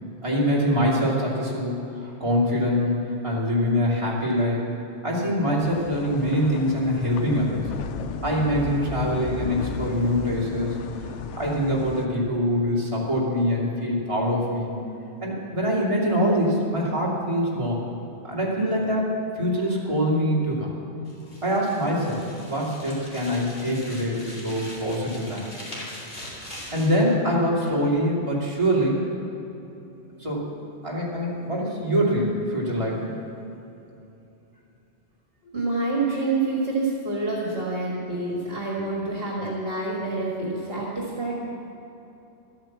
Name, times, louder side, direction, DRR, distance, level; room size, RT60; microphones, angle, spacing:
voice 1, 0.2-4.6 5.0-7.6 8.2-11.1 11.3-14.7 15.2-17.8 18.2-20.7 21.4-25.4 26.7-29.1 30.2-30.5 30.8-33.1, equal, 25° right, -5 dB, 2.6 m, -24 dB
sound 1, 5.6-12.1, left 6 dB, 85° left, 0.9 m, -35 dB
sound 2, 21.1-27.0, left 1 dB, 45° left, 2.8 m, -41 dB
voice 2, 35.5-41.4, right 3 dB, 55° right, -4 dB, 2.1 m, -27 dB
12.5 x 8.8 x 7.3 m, 2.8 s
omnidirectional pair, 1.2 m